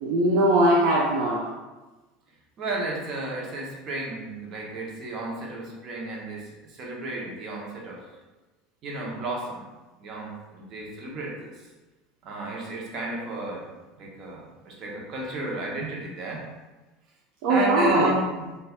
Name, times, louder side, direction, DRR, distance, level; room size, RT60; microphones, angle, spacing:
voice 1, 0.0-1.4 17.4-18.1, right 1 dB, 65° right, -5 dB, 0.6 m, -20 dB
voice 2, 2.6-8.0 8.8-9.7 10.0-11.5 12.2-13.6 14.0-16.4 17.5-18.4, right 2 dB, 45° right, -2 dB, 0.9 m, -33 dB
4.1 x 2.5 x 2.4 m, 1.2 s
hypercardioid pair, 75°, 0 cm